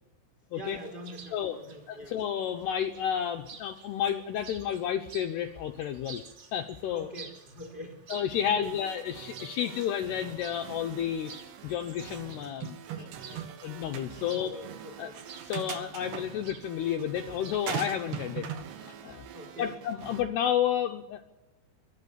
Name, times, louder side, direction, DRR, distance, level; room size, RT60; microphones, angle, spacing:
voice 1, 0.5-2.1 6.9-8.2 8.4-8.8 14.2-15.2 19.3-19.7, equal, 25° right, 4 dB, 3.1 m, -44 dB
Chirp tweet, 0.6-17.7, right 5 dB, 45° right, 4.1 m, -52 dB
voice 2, 1.9-6.2 6.5-7.1 8.1-11.3 11.6-14.5 15.0-15.1 15.5-18.5 18.8-19.3 19.6-21.2, left 9 dB, 80° left, 5 dB, 2.4 m, -31 dB
sound 1, 8.3-20.2, right 8 dB, 85° right, 4.6 m, -48 dB
sound 2, 12.6-13.6 13.9-14.1 15.1-16.2 17.7-18.7, right 8 dB, 65° right, 3.0 m, -37 dB
23.0 x 13.5 x 8.6 m, 1.0 s
omnidirectional pair, 5.9 m